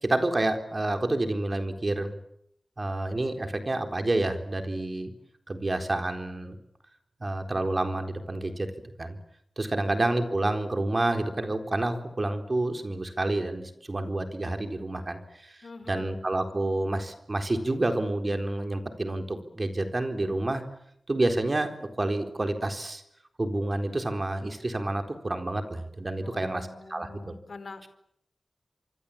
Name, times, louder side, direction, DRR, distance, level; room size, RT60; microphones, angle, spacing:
voice 1, 0.0-2.1 2.8-5.1 5.5-6.6 7.2-8.7 9.0-9.2 9.6-20.6 21.1-23.0 23.4-27.3, right 2 dB, 40° right, 6 dB, 4.1 m, -29 dB
voice 2, 15.6-16.2 26.2-27.9, left 3 dB, 70° left, 11 dB, 4.5 m, -46 dB
26.0 x 25.0 x 8.7 m, 0.74 s
wide cardioid pair, 85°, 0 cm